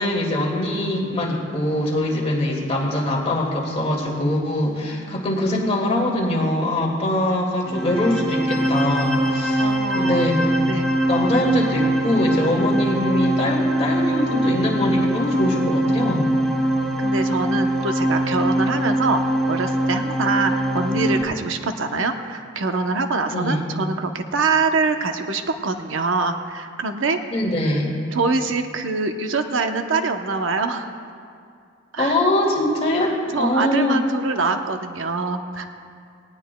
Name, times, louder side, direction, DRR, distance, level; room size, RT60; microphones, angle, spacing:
voice 1, 0.0-9.7 9.9-10.5 11.1-16.3 23.3-23.6 27.3-27.9 32.0-34.0, left 1 dB, 30° left, -2 dB, 2.1 m, -22 dB
voice 2, 4.6-5.2 9.6-10.3 10.7-10.9 17.0-27.2 28.1-30.9 31.9-32.3 33.3-35.7, right 3 dB, 85° right, 6 dB, 0.8 m, -24 dB
sound 1, 7.7-21.2, right 1 dB, 5° left, 0.9 m, -22 dB
18.5 x 18.0 x 2.3 m, 2.3 s
head